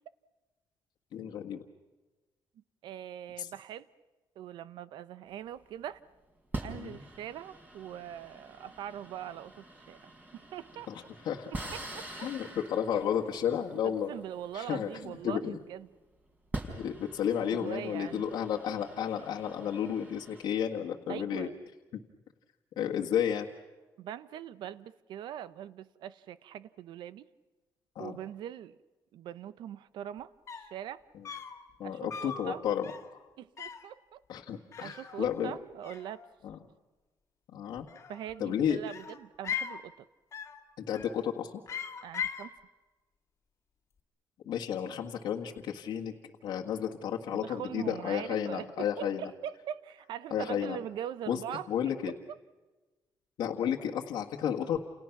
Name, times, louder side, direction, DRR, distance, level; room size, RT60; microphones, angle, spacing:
voice 1, 1.1-1.6 3.4-3.5 6.8-7.0 11.2-11.6 12.2-14.1 14.5-15.6 16.8-21.5 22.8-23.5 27.9-28.2 31.8-33.2 34.3-35.5 36.4-36.6 37.5-37.9 38.4-38.8 40.8-41.5 44.4-46.1 46.4-49.2 50.3-50.8 51.3-51.4 51.7-52.1 53.4-54.8, left 9 dB, 70° left, 1.7 m, -32 dB
voice 2, 2.8-3.9 4.4-6.0 6.6-10.9 11.5-12.3 13.8-15.9 17.5-18.2 21.1-21.6 24.0-27.2 28.0-28.8 29.1-30.3 30.6-31.0 31.8-32.6 33.4-34.2 34.8-36.3 38.1-39.9 42.0-42.6 47.3-51.7 52.1-52.2, right 10 dB, 80° right, 0.9 m, -42 dB
sound 1, 5.3-5.6 6.5-15.5 16.3-20.4, right 2 dB, 20° right, 4.6 m, -45 dB
sound 2, 30.2-30.3 30.5-30.8 31.2-31.6 32.1-32.5 32.8-33.1 33.6-33.9 34.7-35.6 35.8-36.5 37.8-38.4 38.9-39.8 40.3-40.6 40.9-41.3 41.7-42.5, left 7 dB, 40° left, 2.0 m, -40 dB
29.5 x 29.0 x 6.0 m
cardioid pair, 140°, 8 cm